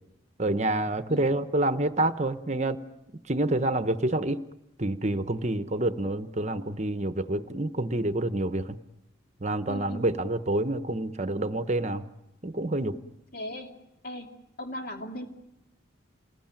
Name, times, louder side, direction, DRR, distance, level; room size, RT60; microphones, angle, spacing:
voice 1, 0.4-2.8 3.3-4.4 4.8-8.8 9.4-12.0 12.4-13.0, right 2 dB, 35° right, 10 dB, 1.0 m, -27 dB
voice 2, 9.7-10.1 13.3-13.7 14.0-14.3 14.6-15.3, left 1 dB, 50° left, 3 dB, 2.7 m, -37 dB
28.5 x 21.0 x 9.0 m, 0.89 s
head